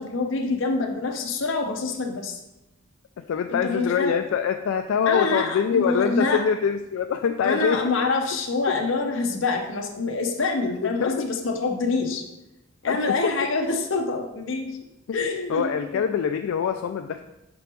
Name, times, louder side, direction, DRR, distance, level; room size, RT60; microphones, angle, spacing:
voice 1, 0.0-2.4 3.5-4.1 5.1-6.4 7.4-12.2 12.8-14.7 15.1-16.0, left 3 dB, 70° left, 3 dB, 0.8 m, -26 dB
voice 2, 3.3-7.8 11.0-11.3 12.9-13.0 13.2-13.3 15.5-17.2, left 7 dB, 85° left, 6 dB, 0.3 m, -24 dB
6.8 x 5.1 x 3.0 m, 0.94 s
head